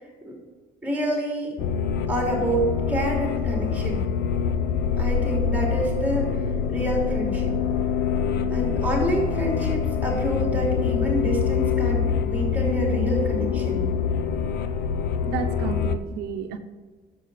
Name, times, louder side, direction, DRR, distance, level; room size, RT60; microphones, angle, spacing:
voice 1, 0.8-1.6 2.1-4.0 5.0-6.4 6.7-7.6 8.5-13.9, right 1 dB, 10° right, -1 dB, 3.4 m, -27 dB
sound 1, 1.6-16.0, left 7 dB, 80° left, 0.7 m, -25 dB
voice 2, 15.3-16.6, right 8 dB, 90° right, 5 dB, 0.8 m, -31 dB
8.4 x 7.6 x 5.6 m, 1.4 s
cardioid pair, 110°, 17 cm